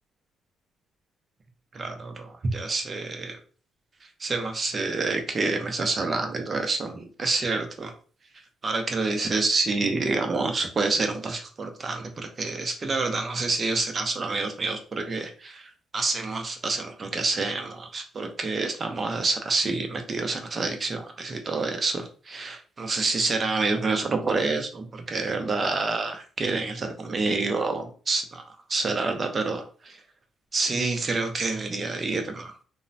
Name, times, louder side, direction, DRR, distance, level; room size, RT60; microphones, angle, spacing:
voice 1, 1.7-3.4 4.2-7.9 8.6-28.4 28.7-30.0 30.5-32.5, right 3 dB, 40° right, 5 dB, 0.6 m, -28 dB
3.0 x 2.0 x 2.6 m, 0.41 s
cardioid pair, 90°, 0 cm